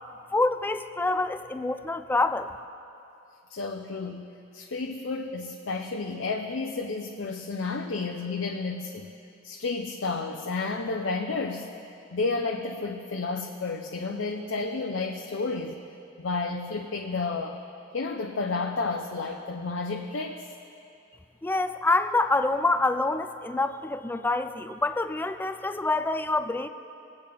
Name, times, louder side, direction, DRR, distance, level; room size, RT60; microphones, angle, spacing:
voice 1, 0.3-2.5 21.4-26.7, left 2 dB, 10° left, 10 dB, 0.4 m, -26 dB
voice 2, 3.5-4.3 4.5-9.1 9.4-11.7 12.1-15.8 16.2-17.6 17.9-20.4, left 3 dB, 65° left, 2 dB, 0.6 m, -31 dB
21.5 x 8.1 x 3.5 m, 2.6 s
head